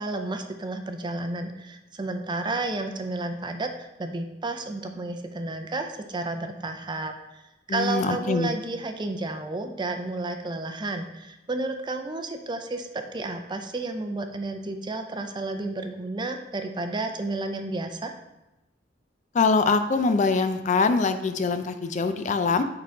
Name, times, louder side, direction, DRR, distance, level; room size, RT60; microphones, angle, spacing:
voice 1, 0.0-7.4 7.7-18.2, right 2 dB, 25° right, 6 dB, 0.5 m, -31 dB
voice 2, 7.7-8.5 19.3-22.6, left 4 dB, 40° left, 9 dB, 0.4 m, -23 dB
8.8 x 3.9 x 3.5 m, 0.97 s
head